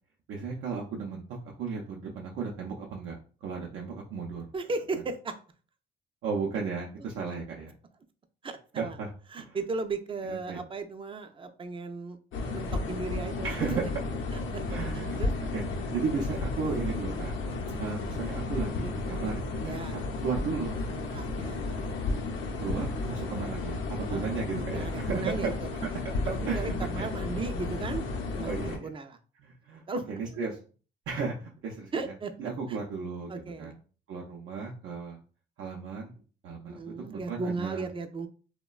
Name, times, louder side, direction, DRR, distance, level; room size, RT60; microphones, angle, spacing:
voice 1, 0.3-4.4 6.2-7.7 8.8-9.1 9.4-9.6 10.3-10.6 13.4-13.8 14.7-15.2 15.5-15.6 15.9-17.3 17.8-20.8 22.6-25.5 25.8-25.9 26.5-27.1 28.4-28.9 29.4-29.8 30.1-30.6 31.1-32.1 32.4-33.7 34.1-35.2 35.6-36.1 36.4-36.8 37.1-37.9, right 5 dB, 80° right, -2 dB, 0.5 m, -35 dB
voice 2, 4.5-5.3 8.4-9.0 9.3-12.2 12.5-13.9 14.3-14.6 14.9-15.3 19.6-20.0 21.1-21.9 24.1-24.3 24.7-25.5 26.2-28.5 28.8-29.2 29.9-30.1 31.9-32.3 32.7-32.8 33.3-33.7 36.7-38.3, right 3 dB, 25° right, 8 dB, 0.4 m, -36 dB
sound 1, 12.3-28.8, left 3 dB, 80° left, 0.6 m, -33 dB
3.0 x 2.1 x 2.3 m, 0.39 s
cardioid pair, 90°, 20 cm